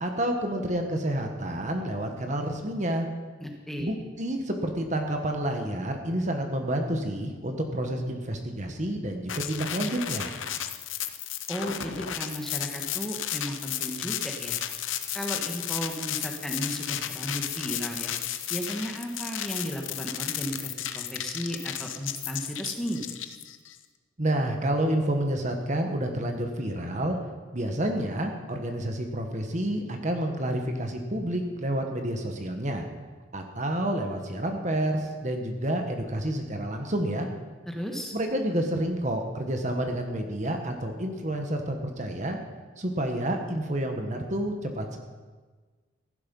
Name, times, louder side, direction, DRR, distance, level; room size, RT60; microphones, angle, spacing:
voice 1, 0.0-3.1 3.8-10.3 24.2-27.2 27.5-32.9 33.3-37.3 38.1-42.4 42.8-45.0, right 1 dB, 40° right, 4 dB, 1.4 m, -29 dB
voice 2, 3.4-3.9 11.5-14.6 15.1-18.1 18.5-23.0 37.7-38.1, equal, ahead, 1 dB, 1.4 m, -34 dB
sound 1, 9.3-23.7, left 11 dB, 80° left, 0.8 m, -33 dB
15.0 x 11.5 x 5.4 m, 1.4 s
head